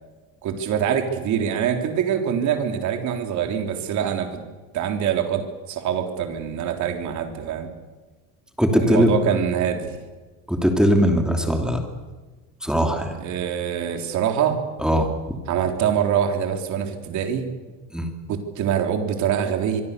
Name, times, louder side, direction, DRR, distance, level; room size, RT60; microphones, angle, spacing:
voice 1, 0.4-4.4 4.7-7.7 8.8-10.0 13.2-14.6 15.5-17.5 18.3-19.8, right 8 dB, 50° right, 5 dB, 3.8 m, -24 dB
voice 2, 8.6-9.2 10.5-11.8 12.6-13.1 14.8-15.1 17.9-18.1, equal, ahead, 3 dB, 2.8 m, -20 dB
26.0 x 23.5 x 6.9 m, 1.3 s
cardioid pair, 155°, 38 cm